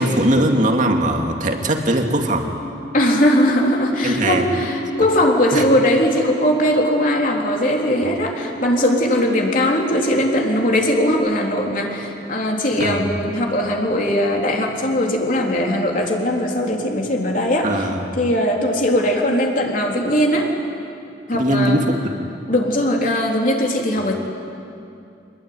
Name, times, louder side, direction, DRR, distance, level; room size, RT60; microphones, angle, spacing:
voice 1, 0.0-2.5 4.0-4.5 5.5-5.6 8.0-8.1 12.8-13.1 17.6-18.1 21.3-22.1, right 1 dB, 45° right, 3 dB, 2.4 m, -20 dB
sound 1, 2.5-11.1, equal, 70° left, 4.3 m, -31 dB
voice 2, 2.9-17.9 18.2-20.5 21.3-21.8 22.5-24.2, left 1 dB, 45° left, 0 dB, 3.6 m, -19 dB
26.0 x 21.0 x 9.6 m, 2.6 s
head